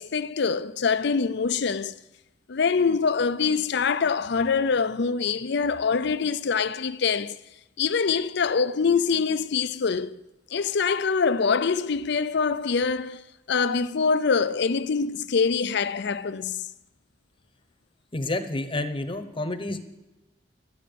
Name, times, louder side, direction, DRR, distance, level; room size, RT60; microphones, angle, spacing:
voice 1, 0.0-1.9 2.5-7.4 7.8-10.2 10.5-13.2 13.5-16.6, left 5 dB, 65° left, 0.5 m, -24 dB
voice 2, 18.1-19.8, left 2 dB, 30° left, 1.0 m, -29 dB
13.0 x 6.8 x 9.3 m
head